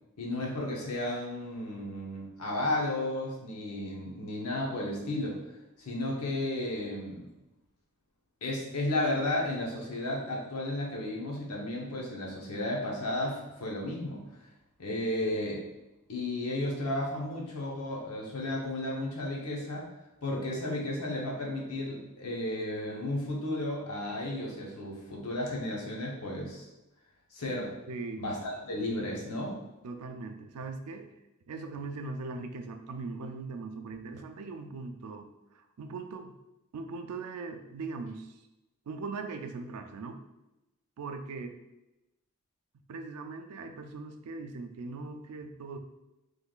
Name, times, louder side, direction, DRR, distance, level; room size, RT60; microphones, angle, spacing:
voice 1, 0.2-5.4 5.8-7.3 8.4-14.2 14.8-15.6 16.1-19.9 20.2-26.7 27.3-27.7 28.2-29.6, left 1 dB, 80° left, -2 dB, 0.9 m, -33 dB
voice 2, 27.9-28.2 29.8-31.1 31.5-36.3 36.7-38.3 38.9-40.2 41.0-41.6 42.9-45.8, right 3 dB, 85° right, 6 dB, 0.4 m, -40 dB
3.7 x 3.3 x 2.4 m, 0.96 s
head